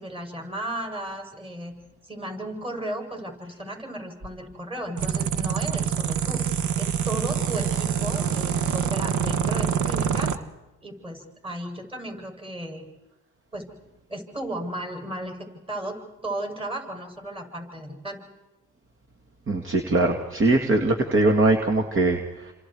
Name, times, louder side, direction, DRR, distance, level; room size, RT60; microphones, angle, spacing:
voice 1, 0.0-1.7 2.0-10.3 10.8-12.8 13.5-13.7 14.1-15.4 15.7-18.2, right 1 dB, 20° right, 2 dB, 8.0 m, -35 dB
sound 1, 5.0-10.4, right 8 dB, 75° right, 1.4 m, -25 dB
voice 2, 19.5-22.5, right 2 dB, 45° right, 3 dB, 2.5 m, -21 dB
30.0 x 26.5 x 4.9 m, 1.1 s
cardioid pair, 90°, 30 cm